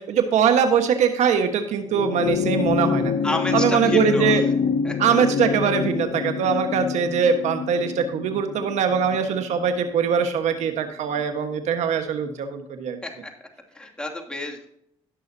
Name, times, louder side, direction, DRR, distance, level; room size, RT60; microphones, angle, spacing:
voice 1, 0.0-3.1 3.5-4.4 5.0-13.0, right 7 dB, 80° right, 7 dB, 1.4 m, -22 dB
sound 1, 1.9-10.6 11.8-11.9, left 6 dB, 70° left, 0.6 m, -26 dB
voice 2, 3.2-4.4 4.8-5.0 13.0-13.3 13.7-14.7, left 1 dB, 10° left, 0 dB, 2.8 m, -30 dB
17.0 x 6.5 x 2.8 m, 0.70 s
cardioid pair, 70°, 12 cm